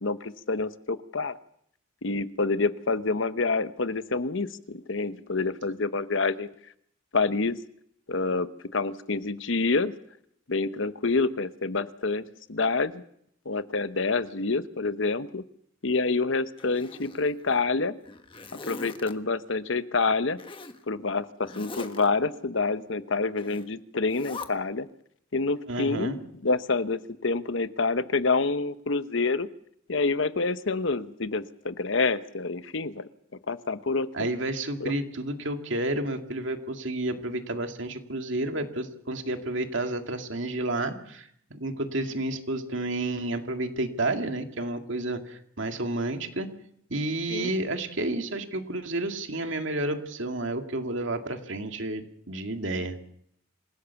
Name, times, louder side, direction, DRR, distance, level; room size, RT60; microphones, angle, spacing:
voice 1, 0.0-1.4 2.0-6.5 7.1-7.6 8.1-9.9 10.5-12.2 12.5-13.0 13.4-15.4 15.8-17.9 18.7-20.4 20.9-24.9 25.3-29.5 29.9-33.1 33.5-34.3 34.8-34.9 47.3-47.5, left 3 dB, 65° left, 12 dB, 1.0 m, -27 dB
Zipper (clothing), 16.6-17.6 18.0-19.1 20.4-20.8 21.4-22.1 23.4-23.7 24.1-24.5, left 3 dB, 25° left, 1.3 m, -42 dB
voice 2, 25.7-26.2 34.1-46.5 46.9-53.0, right 2 dB, 65° right, 5 dB, 2.2 m, -31 dB
27.0 x 16.5 x 7.1 m, 0.69 s
head